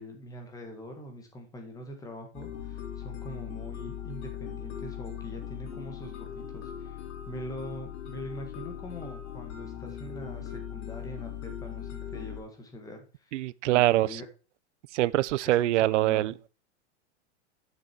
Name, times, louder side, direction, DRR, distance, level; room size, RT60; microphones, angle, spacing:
voice 1, 0.0-7.0 7.3-14.2 15.5-16.3, equal, 10° left, 1.6 m, -43 dB
sound 1, 2.3-12.4, left 9 dB, 75° left, 2.9 m, -39 dB
voice 2, 13.3-14.2 14.9-16.3, right 15 dB, 85° right, 0.6 m, -24 dB
7.8 x 6.9 x 4.4 m
supercardioid pair, 160°, 35 cm